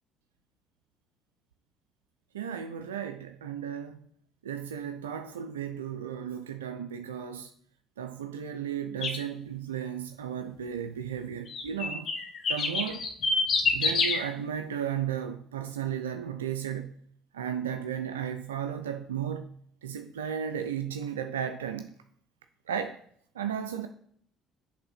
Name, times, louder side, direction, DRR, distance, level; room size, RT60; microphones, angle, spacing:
voice 1, 2.3-4.1 4.4-7.5 8.0-12.1 12.5-13.1 13.7-17.0 17.3-19.5 19.8-21.9 22.7-23.0 23.3-23.9, right 8 dB, 85° right, 0.4 m, -34 dB
sound 1, 9.0-9.2 11.5-14.2, left 4 dB, 55° left, 1.4 m, -27 dB
7.7 x 3.4 x 5.8 m
hypercardioid pair, 55°, 0 cm